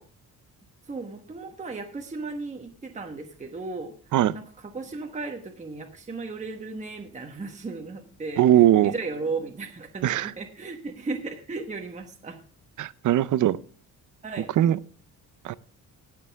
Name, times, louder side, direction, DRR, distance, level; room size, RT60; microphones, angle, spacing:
voice 1, 0.9-12.4 14.2-14.5, right 3 dB, 20° right, 3 dB, 1.2 m, -36 dB
voice 2, 8.4-8.9 10.0-10.3 12.8-13.6 14.6-14.8 15.4-15.5, right 12 dB, 55° right, 18 dB, 0.6 m, -20 dB
19.0 x 6.7 x 3.5 m, 0.42 s
cardioid pair, 150°, 36 cm